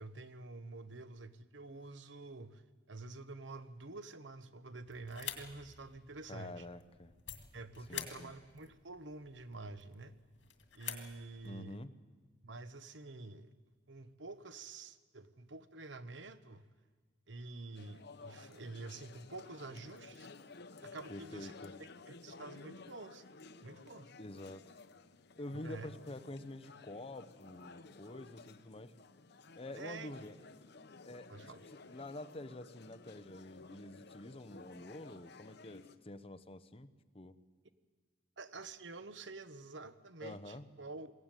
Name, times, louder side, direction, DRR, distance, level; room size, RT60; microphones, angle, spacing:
voice 1, 0.0-2.6 2.9-6.7 7.5-10.2 10.7-11.8 12.4-13.5 13.9-16.7 17.3-20.3 20.8-21.5 21.8-23.2 23.6-24.1 25.5-25.9 29.7-30.1 31.3-31.6 38.4-41.1, right 3 dB, 75° right, 12 dB, 1.2 m, -48 dB
sound 1, 4.8-11.6, left 10 dB, 85° left, 2.2 m, -49 dB
voice 2, 6.3-7.1 7.9-8.3 11.4-11.9 21.1-21.7 24.2-24.7 25.4-28.9 29.5-30.4 31.1-31.5 31.9-36.9 37.1-37.3 40.2-40.7, left 1 dB, 30° left, 10 dB, 1.0 m, -47 dB
sound 2, 17.7-36.0, left 3 dB, 65° left, 0.9 m, -55 dB
22.0 x 17.0 x 9.2 m, 1.5 s
head